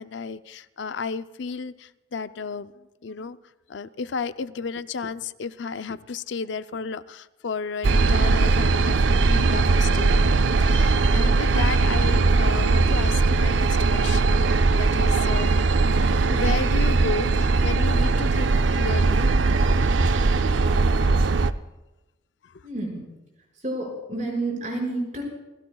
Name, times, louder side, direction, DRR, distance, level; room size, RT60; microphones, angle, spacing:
voice 1, 0.0-3.4 3.7-15.7 16.3-19.3 21.1-21.3 22.4-22.6, left 4 dB, 75° left, 12 dB, 0.5 m, -33 dB
sound 1, 7.8-21.5, right 3 dB, 80° right, 0.5 m, -20 dB
voice 2, 22.6-23.0 23.5-25.2, right 2 dB, 40° right, -1 dB, 5.6 m, -29 dB
29.0 x 17.0 x 2.3 m, 1.1 s
head